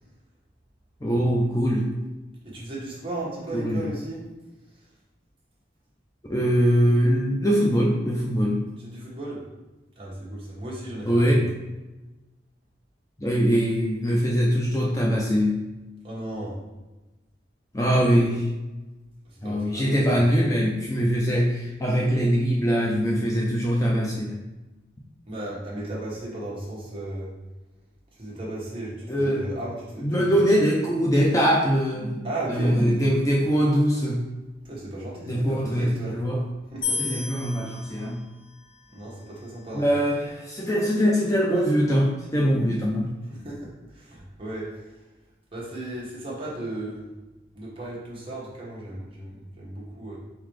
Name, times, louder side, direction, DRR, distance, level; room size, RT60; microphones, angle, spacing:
voice 1, 1.0-1.9 3.5-3.9 6.3-8.7 11.1-11.5 13.2-15.6 17.7-18.5 19.4-24.4 29.1-29.5 30.0-32.2 32.5-34.3 35.3-36.4 37.0-38.2 39.7-43.1, equal, 15° left, -3 dB, 0.5 m, -22 dB
voice 2, 2.4-4.3 8.8-9.4 10.0-11.5 16.0-16.6 19.3-20.2 25.2-27.3 28.2-30.3 32.2-33.0 34.6-36.2 36.7-37.0 38.9-39.9 43.3-45.0 45.5-47.0 47.5-50.2, right 1 dB, 30° right, -6 dB, 1.4 m, -35 dB
sound 1, 36.8-40.0, left 5 dB, 90° left, 1.4 m, -35 dB
4.1 x 3.9 x 3.2 m, 1.1 s
head